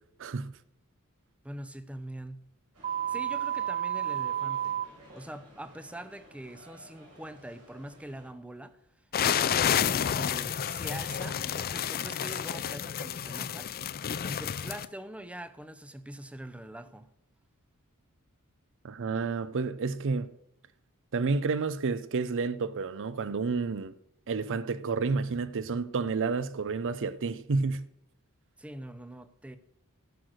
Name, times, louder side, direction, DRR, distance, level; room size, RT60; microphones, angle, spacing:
voice 1, 0.2-0.5 18.8-20.3 21.1-23.9 24.3-27.9, right 4 dB, 60° right, 0.5 m, -30 dB
voice 2, 1.4-2.5 3.1-4.8 5.1-8.8 9.2-13.7 14.1-17.1 28.6-29.6, right 1 dB, 5° right, 0.6 m, -44 dB
sound 1, 2.7-8.3, equal, 80° right, 5.4 m, -54 dB
sound 2, 2.8-4.8, right 10 dB, 30° right, 0.8 m, -31 dB
sound 3, 9.1-14.9, left 8 dB, 45° left, 0.4 m, -30 dB
14.5 x 6.3 x 6.4 m
head